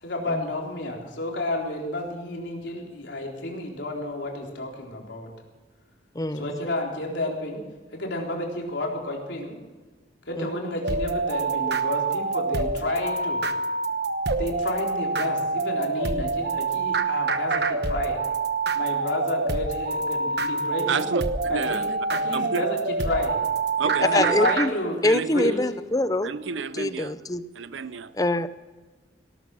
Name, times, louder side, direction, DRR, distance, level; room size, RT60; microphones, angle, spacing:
voice 1, 0.0-5.3 6.3-7.6 7.9-9.6 10.3-13.4 14.4-18.2 18.7-21.1 21.5-23.4 23.9-25.7, left 1 dB, 75° left, 3.9 m, -31 dB
voice 2, 6.1-6.6 10.3-10.5 23.8-24.7 25.0-26.3 26.7-27.4 28.2-28.5, left 2 dB, 20° left, 0.6 m, -25 dB
sound 1, 10.8-24.7, right 4 dB, 60° right, 1.1 m, -26 dB
voice 3, 20.9-21.9 22.3-22.6 23.8-24.4 25.0-25.6 26.2-27.1 27.5-28.1, right 5 dB, 85° right, 0.6 m, -30 dB
18.0 x 12.5 x 6.2 m
head